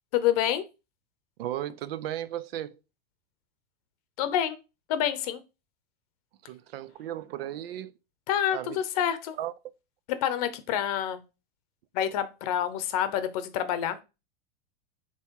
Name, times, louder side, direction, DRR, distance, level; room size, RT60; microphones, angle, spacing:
voice 1, 0.1-0.6 4.2-4.6 4.9-5.4 8.3-9.4 10.2-11.2 11.9-14.0, left 10 dB, 40° left, 0.7 m, -27 dB
voice 2, 1.4-2.8 6.4-7.9 8.5-8.8 9.4-9.5, right 12 dB, 80° right, 0.6 m, -35 dB
7.0 x 3.0 x 4.6 m
supercardioid pair, 180°, 29 cm